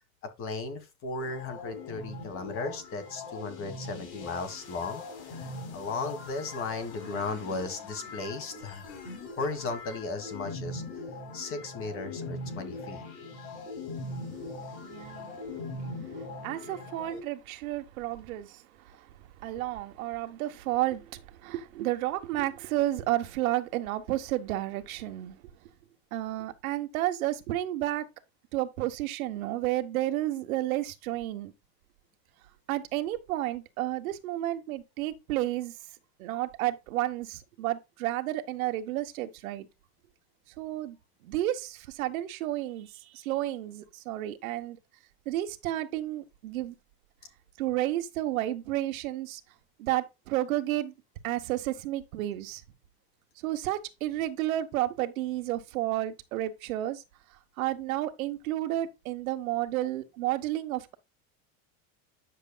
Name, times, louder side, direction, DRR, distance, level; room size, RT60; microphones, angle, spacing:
voice 1, 0.2-5.0 5.4-8.9 9.4-10.8 11.3-13.0, left 3 dB, 30° left, 1.7 m, -36 dB
sound 1, 1.2-17.2, left 2 dB, 90° left, 4.3 m, -41 dB
voice 2, 14.8-15.6 16.1-25.4 26.1-28.1 28.5-31.5 32.7-35.7 36.2-39.7 40.6-41.0 41.2-44.8 45.2-46.7 47.6-49.4 49.8-50.9 51.2-52.6 53.4-57.0 57.6-60.9, right 14 dB, 90° right, 1.4 m, -31 dB
9.8 x 6.8 x 2.3 m
supercardioid pair, 160°, 41 cm